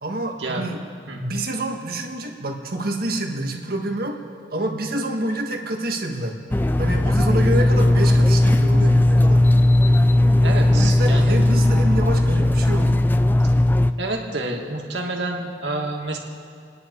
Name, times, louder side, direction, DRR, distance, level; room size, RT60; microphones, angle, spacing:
voice 1, 0.0-0.8 1.2-4.2 4.5-6.3 6.8-9.4 10.7-13.0, right 1 dB, 55° right, 2 dB, 1.8 m, -27 dB
sound 1, 6.5-13.9, left 1 dB, 10° left, 0.3 m, -17 dB
voice 2, 10.4-11.4 14.0-16.2, right 2 dB, 80° right, 0 dB, 2.4 m, -28 dB
30.0 x 10.5 x 4.7 m, 2.2 s
head